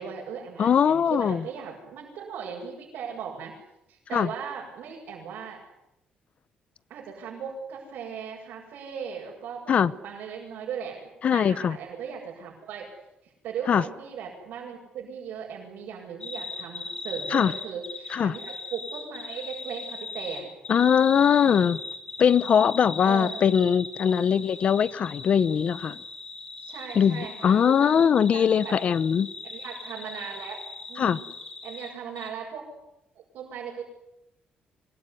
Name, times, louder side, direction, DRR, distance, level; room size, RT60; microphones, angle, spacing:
voice 1, 0.0-3.6 3.9-5.6 6.9-11.0 11.3-12.8 13.2-20.5 23.0-23.4 26.6-28.8 29.4-30.6 30.9-31.3 31.6-32.7 33.2-33.8, right 7 dB, 80° right, 7.0 m, -38 dB
voice 2, 0.6-1.4 4.1-4.3 9.7-9.9 11.2-11.8 13.7-13.8 17.3-17.5 18.1-18.3 20.7-21.8 22.2-26.0 26.9-29.3 31.0-31.2, left 7 dB, 45° left, 0.9 m, -21 dB
sound 1, 16.2-32.3, left 4 dB, 30° left, 5.7 m, -39 dB
25.0 x 21.0 x 9.7 m
cardioid pair, 140°, 3 cm